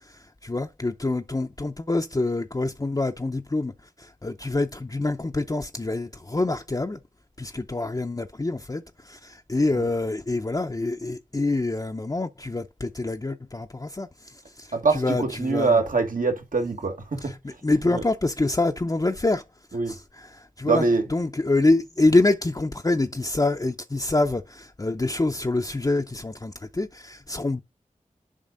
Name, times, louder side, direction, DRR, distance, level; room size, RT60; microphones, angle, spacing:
voice 1, 0.0-3.7 4.0-7.0 7.4-15.8 17.4-19.4 19.9-20.8 21.1-27.6, left 2 dB, 25° left, 0.6 m, -26 dB
voice 2, 14.7-18.0 19.7-20.0 20.7-21.1, right 3 dB, 75° right, 1.7 m, -24 dB
7.4 x 5.1 x 3.8 m
cardioid pair, 40°, 14 cm